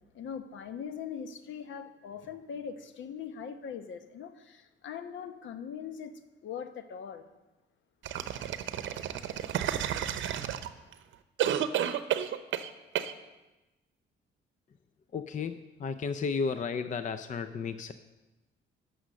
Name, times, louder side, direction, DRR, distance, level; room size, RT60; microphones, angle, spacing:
voice 1, 0.1-7.2, left 7 dB, 70° left, 9 dB, 1.0 m, -41 dB
sound 1, 8.0-10.9 11.4-12.7 12.9-13.1, right 10 dB, 75° right, 0.7 m, -31 dB
voice 2, 15.1-17.9, left 5 dB, 40° left, 11 dB, 0.5 m, -33 dB
11.0 x 6.4 x 6.6 m, 1.1 s
cardioid pair, 90°, 20 cm